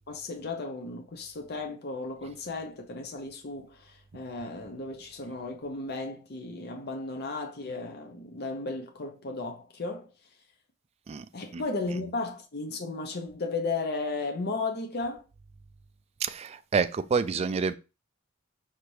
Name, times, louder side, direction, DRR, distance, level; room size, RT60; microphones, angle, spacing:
voice 1, 0.1-10.1 11.3-15.2, left 3 dB, 50° left, 0.7 m, -35 dB
voice 2, 16.2-17.7, right 5 dB, 30° right, 0.3 m, -28 dB
5.7 x 2.6 x 3.2 m
head